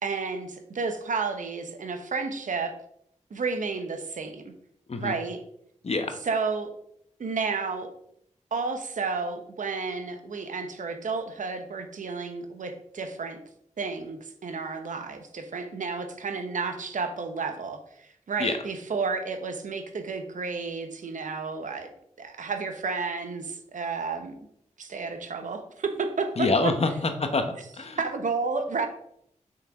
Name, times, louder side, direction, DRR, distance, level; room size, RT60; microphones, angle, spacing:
voice 1, 0.0-2.7 3.3-4.5 5.0-5.4 6.2-6.7 7.2-7.9 8.5-13.4 13.8-21.9 22.2-24.3 24.8-26.7 28.0-28.9, right 4 dB, 80° right, 7 dB, 1.0 m, -31 dB
voice 2, 5.8-6.2 18.4-18.5 26.4-27.5 27.8-28.0, left 3 dB, 55° left, 6 dB, 1.0 m, -26 dB
6.3 x 6.3 x 3.6 m, 0.71 s
wide cardioid pair, 65°, 13 cm